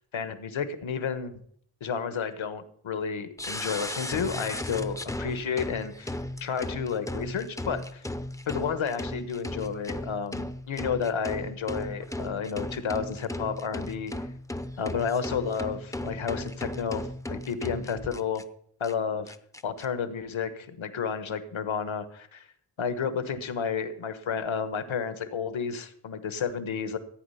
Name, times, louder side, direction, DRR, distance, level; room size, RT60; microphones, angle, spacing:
voice 1, 0.1-1.4 1.8-8.1 8.5-14.1 14.8-18.4 18.8-19.3 19.6-22.5 22.8-27.0, left 6 dB, 70° left, 11 dB, 1.3 m, -31 dB
sound 1, 3.4-18.4 18.8-18.9 19.3-19.8, left 1 dB, 5° left, 0.5 m, -36 dB
15.0 x 9.1 x 5.7 m, 0.64 s
wide cardioid pair, 150°, 49 cm